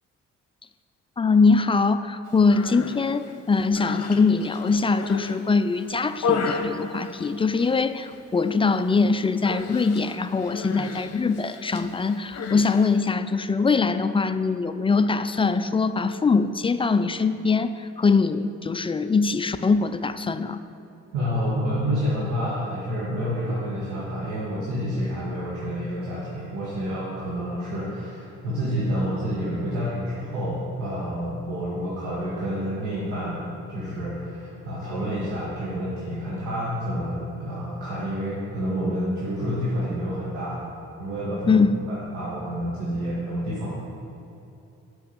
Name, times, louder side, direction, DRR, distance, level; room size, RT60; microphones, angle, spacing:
voice 1, 1.2-20.6 41.5-41.7, left 4 dB, 20° left, 11 dB, 0.4 m, -22 dB
Human voice, 2.4-3.0 3.6-5.4 5.8-7.8 8.0-8.5 8.8-9.0 9.5-13.1, left 5 dB, 55° left, 1.0 m, -33 dB
voice 2, 21.1-33.4 33.7-40.6 41.0-43.8, equal, 90° right, -8 dB, 2.0 m, -29 dB
8.5 x 6.2 x 7.1 m, 2.8 s
cardioid pair, 90°, 30 cm